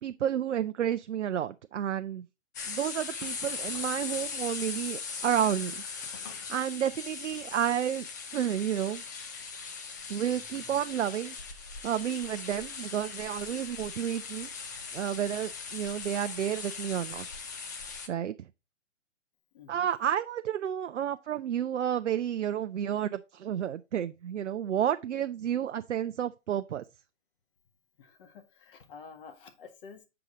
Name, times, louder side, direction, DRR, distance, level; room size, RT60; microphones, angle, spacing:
voice 1, 0.0-2.3 2.7-5.8 6.5-8.1 8.3-9.0 10.1-11.4 11.8-14.5 14.9-17.3 18.1-18.3 19.7-26.8, right 10 dB, 75° right, 0.5 m, -31 dB
sound 1, 2.5-18.1, left 5 dB, 15° left, 0.4 m, -39 dB
voice 2, 19.5-19.9 21.1-21.2 28.0-30.1, left 5 dB, 45° left, 1.7 m, -50 dB
6.9 x 4.8 x 3.8 m
hypercardioid pair, 135°, 36 cm